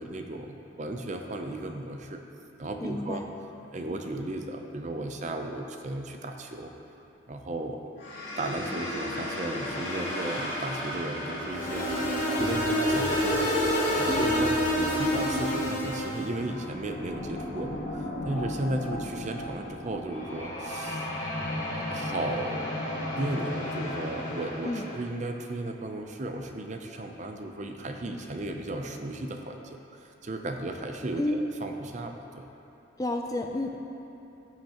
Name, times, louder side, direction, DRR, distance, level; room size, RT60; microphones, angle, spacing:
voice 1, 0.0-2.2 2.6-3.2 3.7-6.7 7.3-7.8 8.4-12.0 12.3-13.4 14.0-21.1 21.7-29.8 30.2-32.4, right 1 dB, 40° right, 4 dB, 0.5 m, -35 dB
voice 2, 2.8-3.2 14.1-14.3 24.6-24.9 31.2-31.4 33.0-33.8, left 1 dB, 20° left, 3 dB, 0.4 m, -30 dB
sound 1, 8.0-25.0, left 1 dB, 70° left, 2.1 m, -35 dB
sound 2, 11.5-16.3, equal, 40° left, 1.9 m, -27 dB
15.5 x 5.9 x 3.0 m, 3.0 s
head